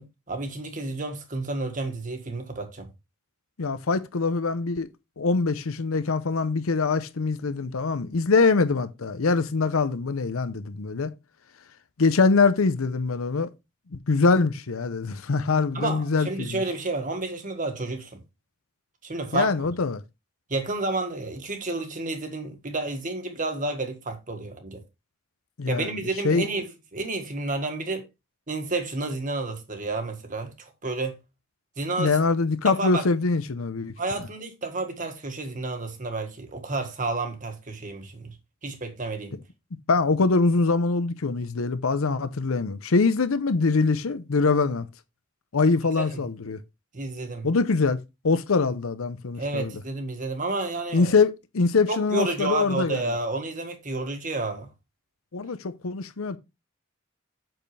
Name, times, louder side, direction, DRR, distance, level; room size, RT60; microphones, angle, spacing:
voice 1, 0.0-2.9 15.7-18.2 19.0-19.7 20.5-24.8 25.7-28.1 28.5-31.2 31.8-32.2 32.7-33.0 34.0-38.3 38.6-39.4 46.0-46.2 46.9-47.5 49.4-51.1 51.9-54.7, right 2 dB, 40° right, 1.7 m, -30 dB
voice 2, 3.6-4.9 5.2-11.1 12.0-13.5 13.9-16.6 19.3-20.0 25.6-26.5 32.0-33.9 39.9-44.9 45.5-46.6 47.4-49.7 50.9-53.1 55.3-56.4, left 4 dB, 90° left, 0.7 m, -23 dB
7.8 x 6.6 x 3.3 m
head